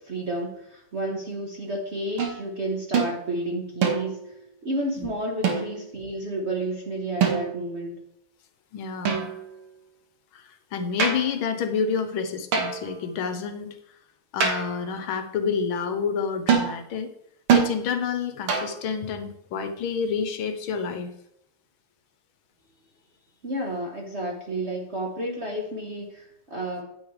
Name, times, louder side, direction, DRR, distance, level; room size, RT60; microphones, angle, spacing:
voice 1, 0.0-4.2 4.6-8.0 23.4-26.8, right 1 dB, 40° right, 1 dB, 1.0 m, -31 dB
sound 1, 2.2-2.4 2.9-3.2 3.8-4.3 5.4-5.9 7.2-7.7 9.1-9.6 11.0-11.4 12.5-12.9 14.4-14.8 16.5-16.8 17.5-17.8 18.5-18.8, right 6 dB, 80° right, 2.2 m, -24 dB
voice 2, 8.7-9.3 10.3-13.8 14.3-17.1 17.5-21.1, left 6 dB, 75° left, 8 dB, 1.5 m, -29 dB
9.3 x 8.8 x 3.2 m, 0.75 s
omnidirectional pair, 2.4 m